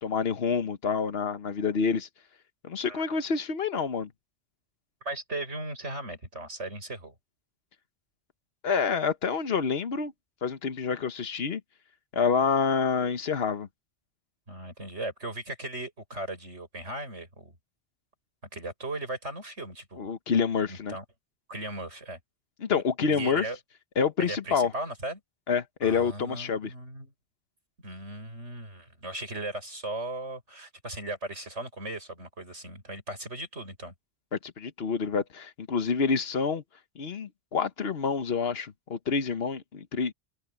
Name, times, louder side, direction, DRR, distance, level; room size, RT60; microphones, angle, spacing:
voice 1, 0.0-2.1 2.6-4.1 8.6-10.1 10.4-11.6 12.1-13.7 20.0-21.0 22.6-23.5 24.0-24.7 25.5-26.7 34.4-36.6 37.0-40.1, left 5 dB, 55° left, 1.3 m, -27 dB
voice 2, 5.0-7.1 14.5-17.6 18.5-20.1 20.7-21.0 21.5-22.2 23.1-23.6 24.2-25.2 25.8-27.1 27.8-33.9, right 2 dB, 70° right, 7.8 m, -37 dB
open air
omnidirectional pair, 1.2 m